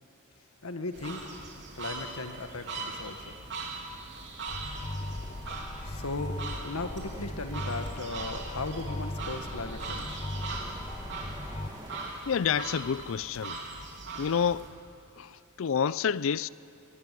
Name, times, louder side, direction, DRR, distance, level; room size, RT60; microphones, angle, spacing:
voice 1, 0.6-1.3 1.8-3.3 5.8-10.2, left 3 dB, 90° left, 1.6 m, -37 dB
sound 1, 0.9-14.7, right 3 dB, 55° right, 3.2 m, -41 dB
sound 2, 4.5-11.7, left 1 dB, 30° left, 0.9 m, -38 dB
sound 3, 4.7-12.1, right 1 dB, 20° right, 2.2 m, -49 dB
voice 2, 12.3-13.6 14.1-14.7 15.2-16.5, left 7 dB, 65° left, 0.4 m, -29 dB
20.5 x 20.0 x 7.7 m
head